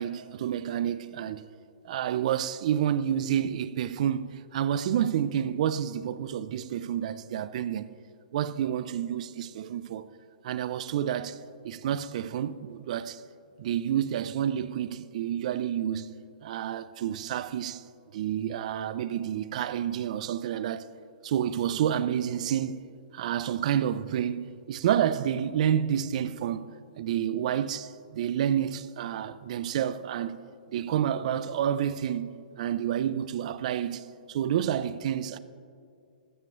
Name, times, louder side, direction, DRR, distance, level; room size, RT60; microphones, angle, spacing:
voice 1, 0.0-1.4 1.8-7.9 8.3-10.1 10.4-11.4 11.6-13.2 13.6-17.8 18.1-20.9 21.2-22.8 23.1-26.7 27.0-30.4 30.7-35.4, right 10 dB, 45° right, 0.3 m, -29 dB
13.5 x 7.2 x 3.1 m
hypercardioid pair, 150°, 5 cm